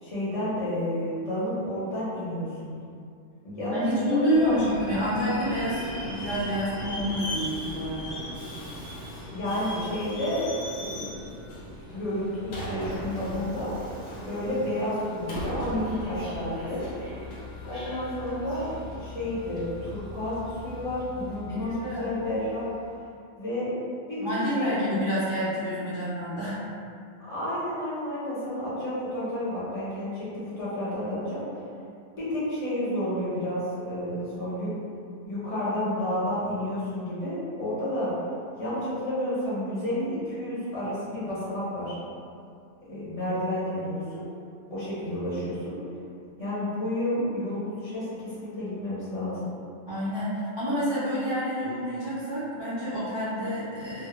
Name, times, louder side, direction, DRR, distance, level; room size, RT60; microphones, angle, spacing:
voice 1, 0.0-2.7 3.4-4.6 9.3-11.0 11.9-13.7 14.2-16.8 17.7-18.6 19.0-22.7 23.4-23.7 24.1-24.2 24.5-24.9 27.2-31.4 32.2-34.7 35.2-38.1 38.6-42.0 42.8-44.2 44.7-45.8 46.4-49.5, left 1 dB, 35° left, -12 dB, 0.7 m, -31 dB
voice 2, 3.7-8.2 21.5-22.1 24.2-26.6 49.9-54.1, equal, 50° right, -13 dB, 0.3 m, -28 dB
Subway metro underground, 4.3-22.8, left 1 dB, 90° left, 0.9 m, -38 dB
2.1 x 2.0 x 2.9 m, 2.4 s
omnidirectional pair, 1.2 m